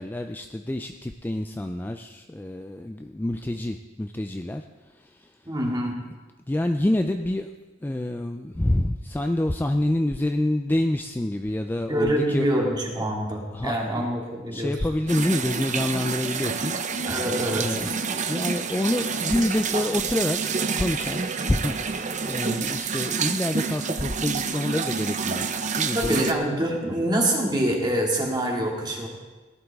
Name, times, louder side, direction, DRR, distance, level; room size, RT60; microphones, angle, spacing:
voice 1, 0.0-4.7 4.9-5.3 6.5-7.5 7.8-12.5 13.0-13.1 13.5-14.1 14.5-17.0 17.6-18.0 18.3-20.4 20.8-21.2 21.5-25.5 25.7-26.3, left 1 dB, 10° left, 6 dB, 0.3 m, -27 dB
voice 2, 5.5-6.0 11.8-14.7 17.1-17.8 25.9-29.1, right 1 dB, 20° right, -1 dB, 2.2 m, -25 dB
sound 1, 15.1-26.3, right 5 dB, 40° right, 0.7 m, -28 dB
17.5 x 11.0 x 3.5 m, 1.3 s
head